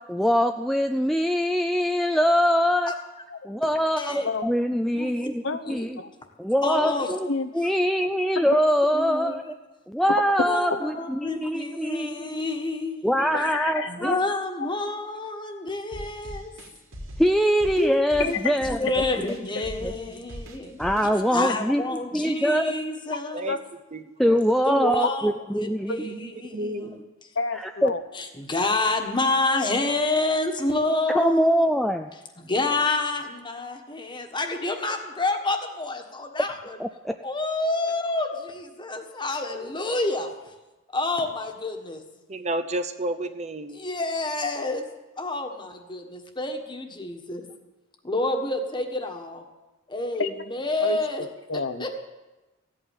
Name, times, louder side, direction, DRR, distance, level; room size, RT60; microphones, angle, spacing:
voice 1, 0.1-2.9 3.4-5.4 5.7-6.0 6.4-7.3 7.5-9.4 9.9-12.5 13.0-14.2 17.2-18.8 19.2-19.3 19.8-19.9 20.8-21.8 22.1-22.7 24.2-26.0 27.5-27.9 31.1-32.1 36.8-37.1, equal, ahead, 5 dB, 0.4 m, -23 dB
voice 2, 4.0-4.3 4.9-5.9 6.6-7.1 8.9-9.4 10.4-13.5 13.9-16.5 17.8-18.4 18.6-20.8 21.3-23.6 24.7-27.0 28.1-31.7 32.4-36.8 37.2-40.3 40.9-42.0 43.7-44.9 45.2-47.5 48.0-49.4 49.9-51.2 51.8-51.9, left 2 dB, 25° left, 4 dB, 1.5 m, -28 dB
voice 3, 5.4-6.1 7.3-7.5 13.3-13.9 14.6-14.7 18.2-18.6 18.9-19.2 19.5-19.7 23.5-23.6 25.9-26.0 27.4-28.0 50.2-50.3 50.8-51.9, left 4 dB, 65° left, 10 dB, 0.9 m, -30 dB
sound 1, 15.9-21.2, equal, 80° right, 2.8 m, -40 dB
voice 4, 23.9-24.4 26.0-27.0 42.3-43.8, right 1 dB, 35° right, 9 dB, 0.7 m, -31 dB
15.5 x 8.6 x 9.0 m, 1.1 s
head